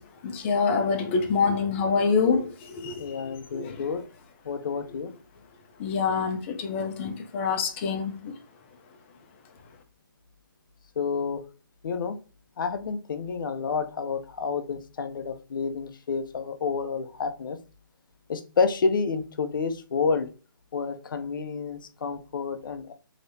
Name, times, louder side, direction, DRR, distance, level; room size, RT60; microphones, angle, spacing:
voice 1, 0.2-3.0 3.5-3.7 5.8-8.3, left 5 dB, 35° left, 0.6 m, -26 dB
voice 2, 3.0-4.0 4.4-5.1 11.0-11.4 11.8-12.2 12.6-17.6 18.3-20.3 20.7-22.9, left 5 dB, 70° left, 0.6 m, -29 dB
3.2 x 2.9 x 2.7 m
hypercardioid pair, 145°, 12 cm